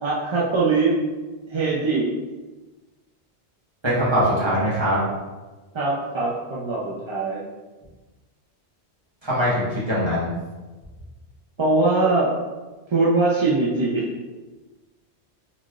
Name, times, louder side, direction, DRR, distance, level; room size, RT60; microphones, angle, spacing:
voice 1, 0.0-1.0 1.5-2.1 5.7-7.4 11.6-12.3 12.9-14.1, right 3 dB, 40° right, -6 dB, 0.4 m, -21 dB
voice 2, 3.8-5.0 9.2-10.3, equal, 25° right, -9 dB, 1.3 m, -22 dB
4.0 x 3.2 x 2.4 m, 1.2 s
omnidirectional pair, 1.1 m